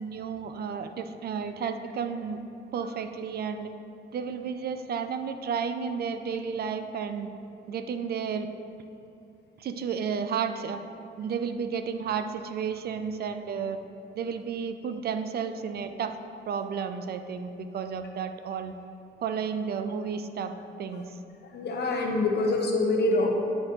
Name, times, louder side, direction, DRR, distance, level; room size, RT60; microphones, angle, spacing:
voice 1, 0.0-2.4 2.7-3.7 4.1-7.3 7.7-8.5 9.6-10.8 11.2-13.8 14.1-16.2 16.5-18.7 19.2-21.0, right 6 dB, 55° right, 8 dB, 0.4 m, -32 dB
voice 2, 21.5-23.3, left 2 dB, 55° left, 1 dB, 1.0 m, -25 dB
10.0 x 4.3 x 3.1 m, 2.6 s
cardioid pair, 90°, 20 cm